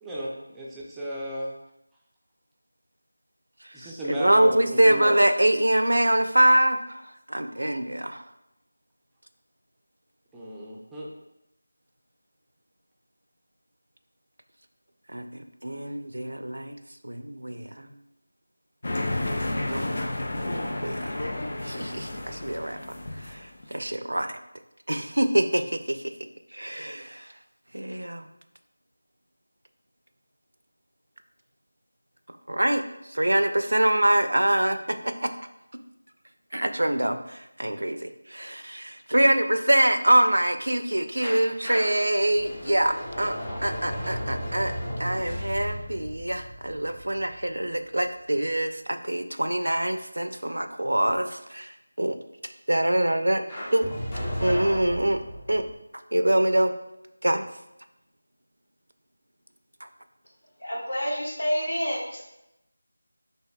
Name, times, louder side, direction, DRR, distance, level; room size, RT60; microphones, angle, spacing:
voice 1, 0.0-1.5 3.7-5.2 10.3-11.1, equal, 5° right, -6 dB, 0.4 m, -34 dB
voice 2, 3.8-7.0 7.3-8.2 15.1-16.8 17.0-17.9 19.4-20.1 20.5-21.1 21.6-22.8 23.2-24.4 24.9-26.0 26.5-27.3 27.7-28.3 32.5-32.8 33.1-34.8 35.0-35.3 36.5-38.0 38.3-43.3 43.6-44.7 45.0-52.2 52.7-53.4 53.7-53.9 54.4-55.2 55.5-55.6 56.1-56.7 57.2-57.4, right 1 dB, 85° right, 8 dB, 0.4 m, -24 dB
sound 1, 18.8-23.7, left 1 dB, 45° left, 0.5 m, -31 dB
sound 2, 41.2-48.0 53.5-55.7, equal, 20° left, 0.8 m, -34 dB
voice 3, 60.6-62.2, equal, 85° left, -3 dB, 1.4 m, -28 dB
5.5 x 3.3 x 2.2 m, 0.88 s
figure-of-eight pair, 170°, 0 cm